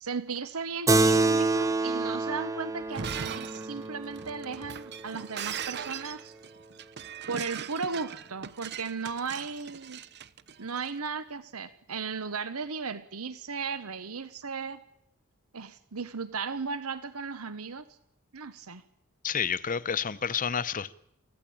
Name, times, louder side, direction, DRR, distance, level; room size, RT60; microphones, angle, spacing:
voice 1, 0.0-6.3 7.3-10.0 10.6-14.8 15.5-17.8 18.3-18.8, right 5 dB, 80° right, 14 dB, 1.1 m, -36 dB
Keyboard (musical), 0.9-5.7, right 3 dB, 15° right, 0.8 m, -28 dB
Shatter, 2.8-10.9, right 7 dB, 50° right, 0.8 m, -40 dB
voice 2, 19.2-20.9, left 7 dB, 40° left, 17 dB, 0.8 m, -30 dB
24.5 x 15.5 x 8.7 m, 0.79 s
head